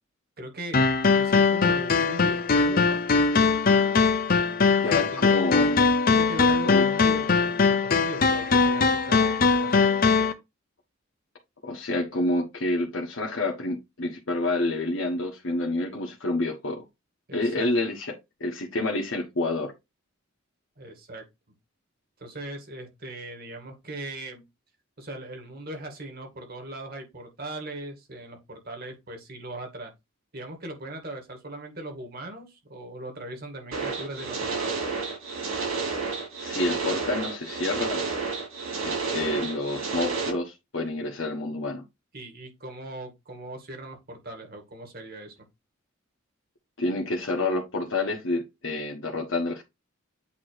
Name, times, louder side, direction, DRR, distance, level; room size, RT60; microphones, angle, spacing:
voice 1, 0.4-0.8 1.2-3.1 4.9-5.3 6.1-9.9 17.3-17.7 20.8-21.2 22.2-24.4 25.0-29.9 30.3-34.8 42.1-45.4, right 1 dB, 45° right, 2.1 m, -39 dB
sound 1, 0.7-10.3, left 4 dB, 45° left, 0.7 m, -21 dB
voice 2, 4.8-5.9 6.6-6.8 11.6-16.8 17.3-18.1 18.4-19.7 36.4-38.0 38.8-41.8 46.8-49.6, left 2 dB, 65° left, 1.3 m, -28 dB
sound 2, 33.7-40.3, right 4 dB, 85° right, 4.3 m, -30 dB
8.3 x 3.0 x 4.6 m
head